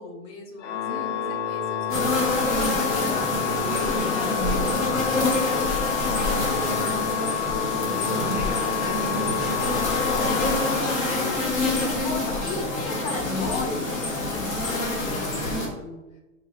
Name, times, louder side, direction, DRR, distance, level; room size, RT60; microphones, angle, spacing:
voice 1, 0.0-2.8 10.8-16.0, left 3 dB, 40° left, 1 dB, 1.0 m, -37 dB
Organ, 0.6-11.5, left 8 dB, 60° left, 0.6 m, -29 dB
voice 2, 0.8-1.3 3.1-7.9 8.2-10.8, left 2 dB, 15° left, -2 dB, 0.3 m, -38 dB
sound 1, 1.9-15.7, left 2 dB, 75° left, 1.2 m, -26 dB
5.3 x 2.5 x 3.1 m, 1.1 s
hypercardioid pair, 105°, 40 cm